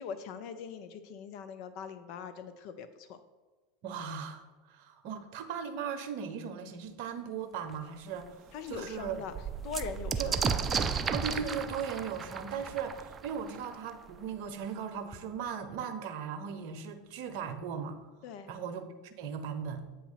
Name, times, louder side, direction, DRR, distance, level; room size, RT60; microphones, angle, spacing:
voice 1, 0.0-3.2 8.5-9.3 9.6-10.4 18.2-18.5, left 6 dB, 55° left, 10 dB, 0.4 m, -41 dB
voice 2, 3.8-9.2 10.2-10.3 11.1-18.0 18.5-19.9, right 7 dB, 60° right, 8 dB, 0.7 m, -38 dB
sound 1, 7.7-7.8 8.2-8.3 8.6-14.2 15.1-15.2 15.5-16.1, right 5 dB, 25° right, 0.4 m, -34 dB
8.2 x 3.0 x 5.6 m, 1.3 s
hypercardioid pair, 85°, 0 cm